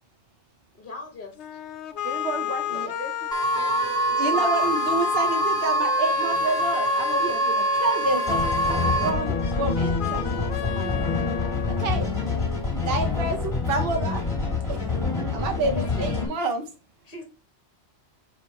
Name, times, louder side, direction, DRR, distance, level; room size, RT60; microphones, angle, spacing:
voice 1, 0.8-1.3 2.4-2.9 15.7-16.1 17.0-17.2, left 3 dB, 50° left, 3 dB, 1.5 m, -40 dB
sound 1, 1.4-12.4, left 11 dB, 75° left, 0.9 m, -32 dB
voice 2, 2.0-4.5, right 4 dB, 75° right, 6 dB, 1.4 m, -36 dB
sound 2, 3.3-9.1, right 2 dB, 5° left, 1.3 m, -24 dB
voice 3, 4.2-11.0 11.7-12.1 12.7-14.3 14.7-14.9 15.3-16.7, right 3 dB, 60° right, 3 dB, 1.1 m, -29 dB
sound 3, 8.3-16.3, left 4 dB, 30° left, 2.2 m, -27 dB
6.6 x 3.5 x 4.2 m, 0.30 s
omnidirectional pair, 1.2 m